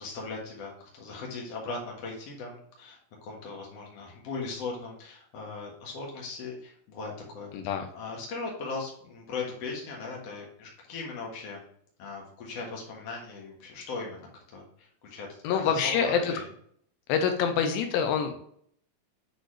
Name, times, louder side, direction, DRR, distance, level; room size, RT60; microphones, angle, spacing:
voice 1, 0.0-7.5 7.9-11.6 12.0-16.5 17.4-17.6, left 3 dB, 50° left, -1 dB, 2.3 m, -39 dB
voice 2, 7.5-7.8 15.4-16.3 17.1-18.4, left 7 dB, 85° left, 6 dB, 2.5 m, -26 dB
8.1 x 4.1 x 3.2 m, 0.64 s
omnidirectional pair, 4.2 m